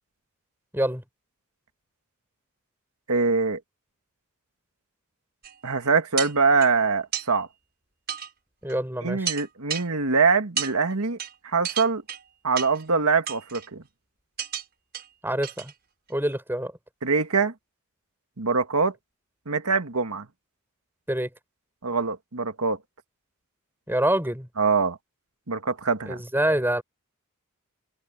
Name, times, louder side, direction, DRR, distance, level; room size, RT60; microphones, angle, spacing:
voice 1, 0.7-1.0 8.6-9.3 15.2-15.7 16.1-16.7 21.1-21.3 23.9-24.5 26.1-26.8, right 1 dB, 10° right, 6.0 m, -26 dB
voice 2, 3.1-3.6 5.6-7.5 9.0-11.2 11.4-12.0 12.4-13.8 17.0-17.5 18.4-18.9 19.5-20.3 21.8-22.8 24.6-25.0 25.5-26.2, right 4 dB, 85° right, 1.9 m, -23 dB
sound 1, 5.4-5.5 6.2-6.7 7.1-7.3 8.1-8.3 8.7-8.8 9.2-9.8 10.6-10.7 11.2-11.3 11.6-12.2 12.6-12.8 13.3-13.7 14.4-14.6 14.9-15.1 15.4-15.7 16.1-16.2, right 9 dB, 45° right, 6.6 m, -31 dB
head